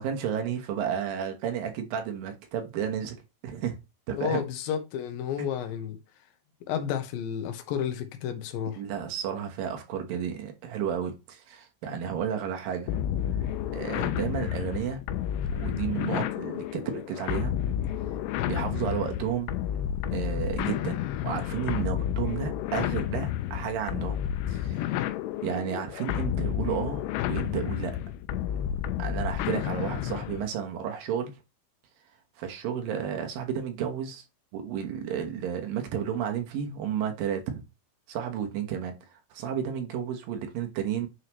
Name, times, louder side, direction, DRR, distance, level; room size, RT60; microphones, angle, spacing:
voice 1, 0.0-3.2 3.4-3.8 4.1-4.4 8.8-13.0 13.7-15.0 15.5-17.6 18.4-19.5 20.1-24.2 24.5-25.0 25.4-27.9 29.0-31.3 32.4-34.2 34.5-37.6 38.1-41.1, right 8 dB, 65° right, 2.6 m, -32 dB
voice 2, 4.1-6.0 6.7-8.8, left 9 dB, 70° left, 2.6 m, -31 dB
sound 1, 12.9-30.5, left 11 dB, 85° left, 2.7 m, -31 dB
9.5 x 4.8 x 3.1 m
omnidirectional pair, 4.9 m